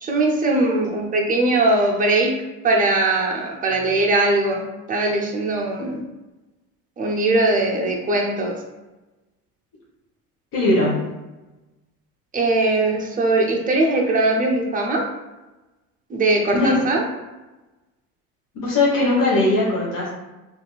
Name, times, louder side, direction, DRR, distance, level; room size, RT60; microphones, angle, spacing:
voice 1, 0.0-2.3 2.6-6.0 7.0-8.6 12.3-15.0 16.1-17.0, right 2 dB, 20° right, 0 dB, 0.5 m, -20 dB
voice 2, 10.5-11.1 16.5-16.8 18.5-20.1, left 2 dB, 45° left, -6 dB, 1.0 m, -19 dB
2.7 x 2.5 x 2.2 m, 1.1 s
hypercardioid pair, 80°, 46 cm